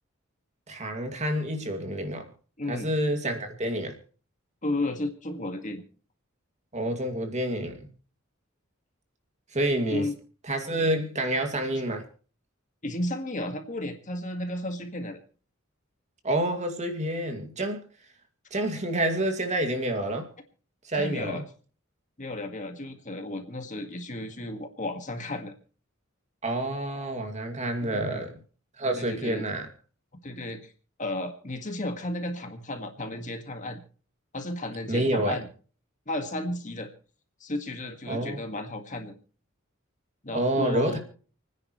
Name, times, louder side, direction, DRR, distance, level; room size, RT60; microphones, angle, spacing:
voice 1, 0.7-2.3 2.7-4.0 6.7-7.9 9.5-10.1 10.5-12.0 16.2-17.8 18.5-20.3 20.8-21.4 26.4-28.3 28.8-29.7 34.9-35.4 38.1-38.4 40.3-41.0, right 1 dB, 35° right, 2.5 m, -28 dB
voice 2, 2.6-2.9 4.6-5.8 9.9-10.1 12.8-15.2 21.0-21.4 22.2-25.5 27.8-28.2 29.0-29.4 30.2-30.7 31.0-33.8 34.3-35.5 36.1-36.9 37.4-39.1 40.2-41.0, left 1 dB, 40° left, 1.9 m, -33 dB
29.5 x 9.9 x 3.2 m
head